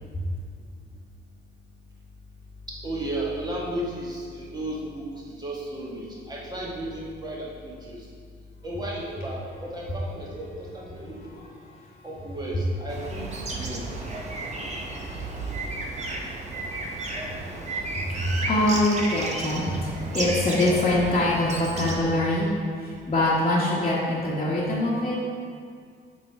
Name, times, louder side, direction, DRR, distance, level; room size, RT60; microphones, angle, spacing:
voice 1, 2.7-8.1 8.6-11.4 12.0-13.9, right 1 dB, 20° right, -5 dB, 1.7 m, -34 dB
sound 1, 12.9-21.9, right 2 dB, 35° right, 1.0 m, -33 dB
voice 2, 14.0-22.5 22.8-25.3, left 1 dB, 30° left, -9 dB, 1.4 m, -26 dB
5.9 x 4.5 x 4.8 m, 2.2 s
cardioid pair, 90°, 20 cm